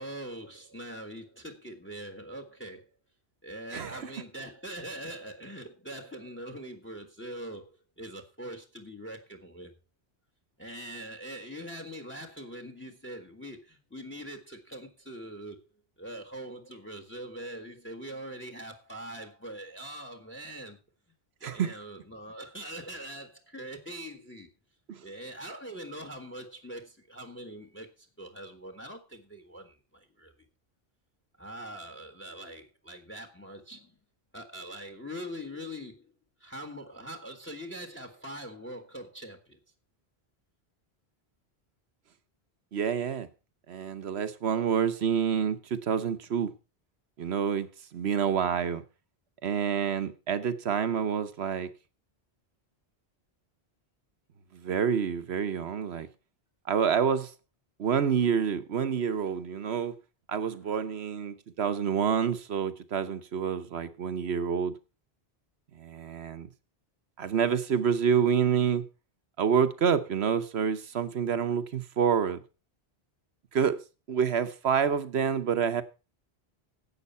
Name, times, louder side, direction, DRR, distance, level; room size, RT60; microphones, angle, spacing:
voice 1, 0.0-2.9 3.4-9.7 10.6-15.6 16.0-20.8 21.4-24.5 25.0-30.3 31.4-33.9 34.3-36.1 36.4-39.6 60.6-60.9, right 1 dB, 10° left, 1.3 m, -42 dB
voice 2, 3.7-4.1 21.4-21.7 24.9-25.0 42.7-43.3 43.7-46.5 47.2-48.8 49.4-51.7 54.5-56.1 56.7-57.3 57.8-60.0 60.3-64.7 65.7-66.5 67.2-68.8 69.4-72.4 73.5-73.8 74.1-75.8, right 7 dB, 80° right, 1.2 m, -28 dB
11.0 x 8.1 x 5.5 m
omnidirectional pair, 1.1 m